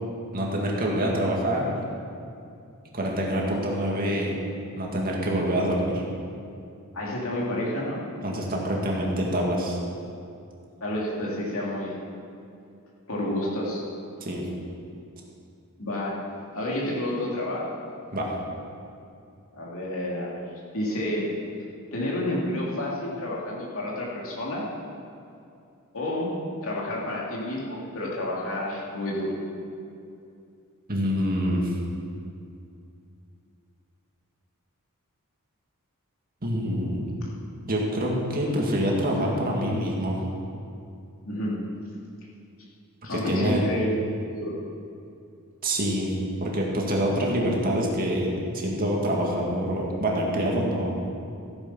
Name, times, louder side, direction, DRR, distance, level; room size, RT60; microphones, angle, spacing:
voice 1, 0.3-1.7 2.9-4.3 4.8-6.0 8.2-9.8 14.2-14.4 18.1-18.3 30.9-31.7 36.4-37.1 37.7-40.2 43.1-43.6 45.6-46.1 46.4-50.9, equal, 40° right, -2 dB, 2.2 m, -26 dB
voice 2, 6.9-8.0 10.8-12.0 13.1-13.8 15.8-16.1 16.5-17.6 19.5-20.4 20.7-21.3 21.9-24.6 25.9-26.3 26.6-29.3 41.2-41.5 43.0-44.5, left 1 dB, 65° left, -4 dB, 2.9 m, -29 dB
14.5 x 9.0 x 5.7 m, 2.5 s
head